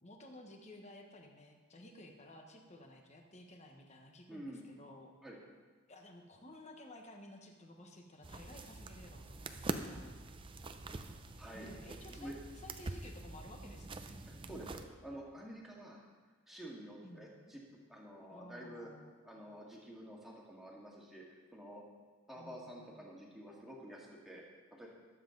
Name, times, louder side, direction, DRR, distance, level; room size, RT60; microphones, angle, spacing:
voice 1, 0.0-5.1 5.9-10.2 11.5-14.2 17.0-17.5 18.3-19.2 22.3-23.0, left 1 dB, 30° left, 2 dB, 1.1 m, -54 dB
voice 2, 4.3-4.7 5.2-5.4 11.4-11.7 12.1-12.3 14.2-16.1 16.5-17.6 17.9-18.9 19.2-21.8 22.3-24.4 24.7-24.9, right 1 dB, ahead, -4 dB, 2.0 m, -49 dB
sound 1, 8.2-14.9, right 2 dB, 25° right, 0.5 m, -45 dB
19.5 x 7.4 x 3.9 m, 1.4 s
head